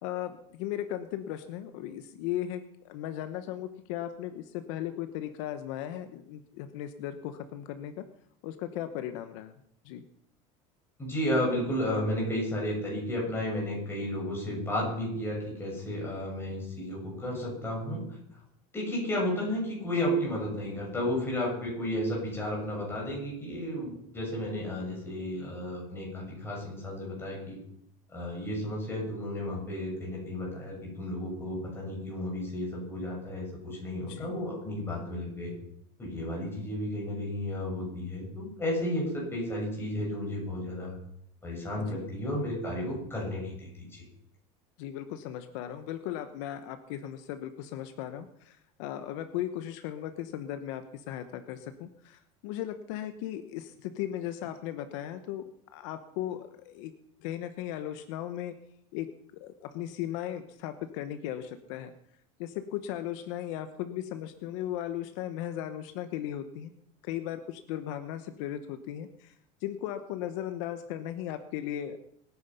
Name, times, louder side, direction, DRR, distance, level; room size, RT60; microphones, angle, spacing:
voice 1, 0.0-8.0 8.4-9.5 9.8-10.0 34.0-34.4 41.8-42.1 44.8-56.9 57.2-58.5 58.9-59.1 59.3-61.9 62.4-66.7 67.0-69.3 69.6-72.0, left 11 dB, 70° left, 10 dB, 1.1 m, -37 dB
voice 2, 11.0-18.2 18.7-27.6 28.1-35.5 36.0-40.9 41.4-44.0, left 1 dB, 15° left, -3 dB, 7.0 m, -33 dB
23.5 x 9.7 x 5.7 m, 0.74 s
cardioid pair, 155°, 17 cm